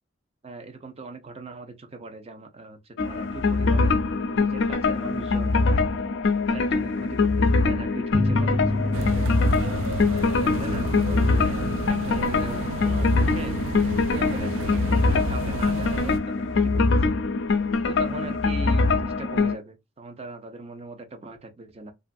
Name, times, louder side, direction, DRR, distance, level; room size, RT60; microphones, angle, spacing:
voice 1, 0.4-3.9 4.3-5.6 6.5-9.2 10.1-11.5 11.9-13.6 14.1-14.6 15.1-17.1 17.9-21.9, right 3 dB, 30° right, 0.5 m, -40 dB
sound 1, 3.0-19.5, left 3 dB, 65° left, 0.4 m, -23 dB
sound 2, 8.1-13.3, left 1 dB, 15° right, 0.9 m, -30 dB
sound 3, 8.9-16.2, right 2 dB, 85° right, 0.4 m, -31 dB
3.0 x 2.4 x 2.5 m
head